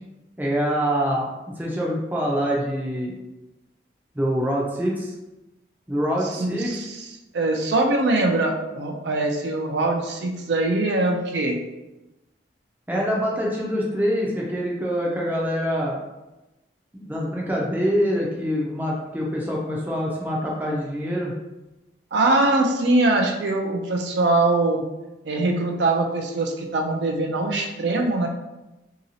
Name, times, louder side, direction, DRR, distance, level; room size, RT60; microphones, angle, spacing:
voice 1, 0.4-1.3 1.6-3.1 4.1-5.1 5.9-6.8 12.9-16.0 16.9-21.3, equal, 10° right, -3 dB, 0.4 m, -25 dB
voice 2, 6.3-7.1 7.3-11.6 22.1-24.8 25.2-28.3, right 2 dB, 70° right, 2 dB, 0.5 m, -22 dB
2.8 x 2.8 x 2.7 m, 1.0 s
head